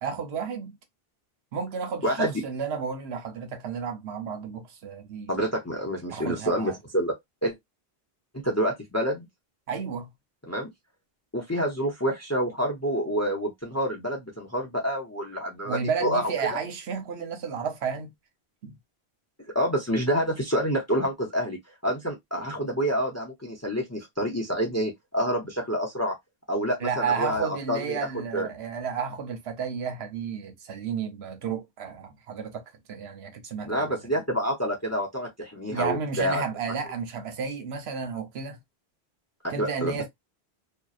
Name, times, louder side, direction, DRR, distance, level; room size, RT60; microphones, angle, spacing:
voice 1, 0.0-0.8 1.5-5.4 6.1-6.7 9.7-10.1 15.6-18.1 18.6-18.8 26.8-34.0 35.7-38.6 39.5-40.1, right 6 dB, 80° right, 0.9 m, -32 dB
voice 2, 2.0-2.4 5.3-7.1 7.4-7.5 8.4-9.3 10.5-10.7 11.3-16.6 19.5-26.1 26.5-28.5 33.6-36.4 39.4-40.1, equal, 20° left, 0.4 m, -28 dB
2.7 x 2.1 x 2.3 m
omnidirectional pair, 1.1 m